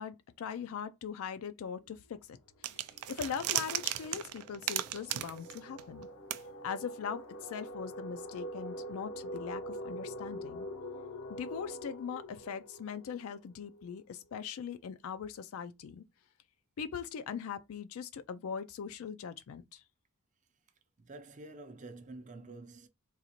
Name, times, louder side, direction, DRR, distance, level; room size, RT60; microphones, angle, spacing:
voice 1, 0.0-2.4 2.7-2.8 3.1-6.1 6.6-10.7 11.3-16.0 16.8-19.8, left 7 dB, 70° left, 0.3 m, -41 dB
sound 1, 1.8-2.1 2.4-14.0, equal, 85° left, 0.8 m, -45 dB
sound 2, 2.6-6.0 6.3-6.4, right 12 dB, 85° right, 0.4 m, -35 dB
voice 2, 21.0-22.9, right 2 dB, 35° right, 0.6 m, -48 dB
4.0 x 2.4 x 2.9 m
head